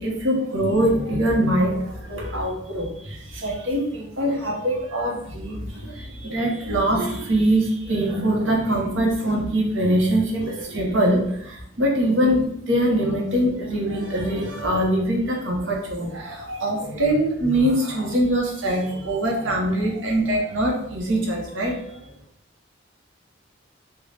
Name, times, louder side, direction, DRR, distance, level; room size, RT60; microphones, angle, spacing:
voice 1, 0.0-22.0, right 1 dB, 80° right, -1 dB, 0.9 m, -23 dB
3.3 x 2.3 x 3.9 m, 0.72 s
head